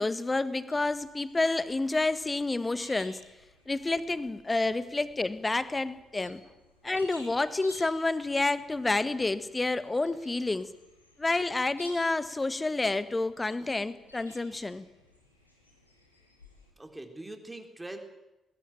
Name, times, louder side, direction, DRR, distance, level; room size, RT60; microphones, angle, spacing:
voice 1, 0.0-3.2 3.7-6.4 6.8-10.7 11.2-14.9, left 2 dB, 20° left, 14 dB, 1.6 m, -29 dB
sound 1, 0.7-16.7, left 1 dB, 90° left, 3.0 m, -56 dB
voice 2, 6.2-6.6 16.8-18.0, right 1 dB, 15° right, 5 dB, 3.8 m, -43 dB
20.0 x 18.5 x 9.1 m, 0.98 s
figure-of-eight pair, 40°, 0 cm